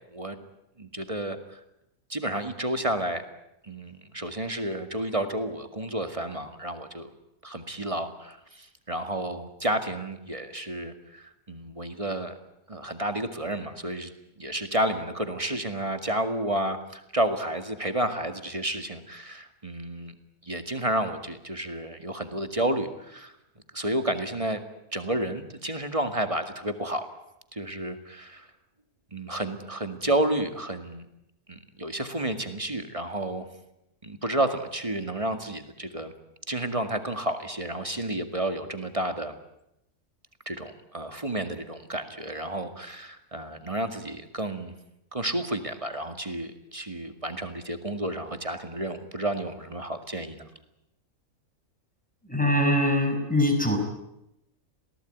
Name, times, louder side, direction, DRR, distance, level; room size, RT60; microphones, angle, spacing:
voice 1, 0.8-1.6 2.1-3.2 3.6-7.1 7.4-12.3 12.7-14.1 14.4-20.1 20.5-23.3 23.7-24.6 24.9-27.1 27.5-28.5 29.1-31.1 31.5-33.5 34.0-36.1 36.5-39.3 40.5-44.7 45.1-50.4, right 1 dB, 20° right, 8 dB, 2.1 m, -31 dB
voice 2, 52.2-53.8, left 1 dB, 5° left, 3 dB, 5.9 m, -23 dB
27.5 x 18.5 x 9.4 m, 0.84 s
omnidirectional pair, 1.5 m